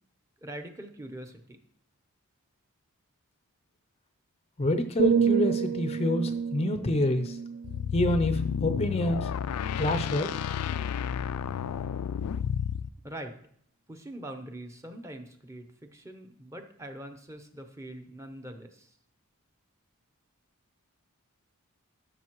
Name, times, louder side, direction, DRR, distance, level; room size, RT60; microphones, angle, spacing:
voice 1, 0.4-1.6 13.0-13.3 13.9-18.9, right 1 dB, 15° right, 5 dB, 0.7 m, -43 dB
voice 2, 4.6-7.4 7.9-9.3 9.8-10.3, left 1 dB, 25° left, 8 dB, 0.5 m, -27 dB
sound 1, 5.0-8.9 9.4-9.7, right 6 dB, 80° right, 0.3 m, -29 dB
sound 2, 7.6-12.9, left 8 dB, 90° left, 0.4 m, -31 dB
12.0 x 6.5 x 3.0 m, 0.66 s
head